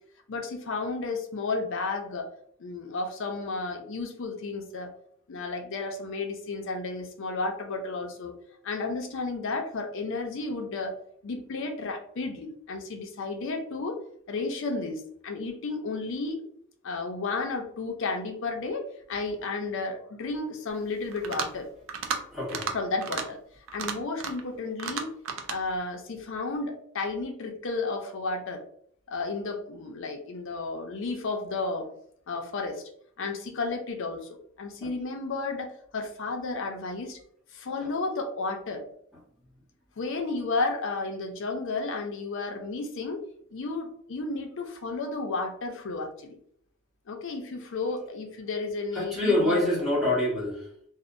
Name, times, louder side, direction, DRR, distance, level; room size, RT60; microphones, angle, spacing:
voice 1, 0.3-2.3 2.6-4.9 5.3-8.3 8.6-11.0 11.2-14.0 14.3-16.4 16.8-21.7 22.7-23.4 23.7-25.1 25.5-28.6 29.1-31.9 32.3-32.8 33.2-34.3 34.6-37.2 37.5-38.8 40.0-43.2 43.5-46.4 47.1-49.6, left 3 dB, 60° left, 3 dB, 0.5 m, -32 dB
sound 1, 21.1-21.6 21.9-22.2 22.5-22.7 23.0-23.2 23.7-24.5 24.8-25.6, right 6 dB, 65° right, 0.4 m, -32 dB
voice 2, 22.3-22.7 34.8-34.9 48.9-50.6, left 1 dB, ahead, -6 dB, 0.9 m, -26 dB
2.7 x 2.0 x 2.5 m, 0.65 s
head